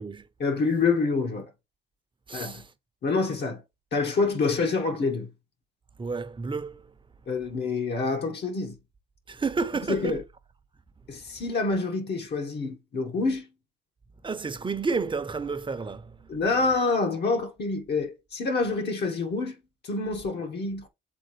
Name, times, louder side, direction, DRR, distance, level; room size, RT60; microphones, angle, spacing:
voice 1, 0.4-1.5 2.3-2.6 3.0-3.6 3.9-5.3 7.3-8.8 9.9-10.2 11.1-13.5 16.3-19.5 19.8-20.9, left 4 dB, 55° left, 1.6 m, -27 dB
voice 2, 2.3-2.7 6.0-6.9 9.3-10.2 14.2-16.3, right 4 dB, 25° right, 0.9 m, -31 dB
7.9 x 3.8 x 3.2 m
cardioid pair, 90°, 20 cm